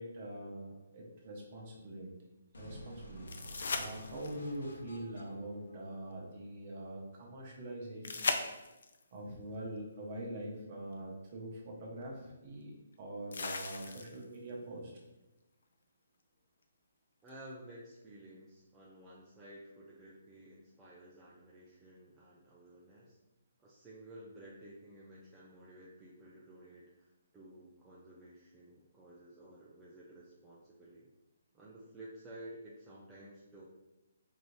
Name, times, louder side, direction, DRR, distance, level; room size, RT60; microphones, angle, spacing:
voice 1, 0.0-2.1 2.6-3.2 3.7-8.3 9.1-12.7 13.0-14.9, right 1 dB, 30° right, -2 dB, 0.9 m, -44 dB
sound 1, 2.5-6.5, equal, 90° left, 0.9 m, -51 dB
sound 2, 3.3-4.6 8.0-9.0 10.9-11.0 13.3-14.3 17.3-17.4, left 4 dB, 65° left, 0.4 m, -37 dB
voice 2, 17.2-23.2 23.6-31.1 31.5-33.6, right 1 dB, 10° right, -6 dB, 0.3 m, -53 dB
4.7 x 2.6 x 3.1 m, 1.0 s
hypercardioid pair, 175°, 0 cm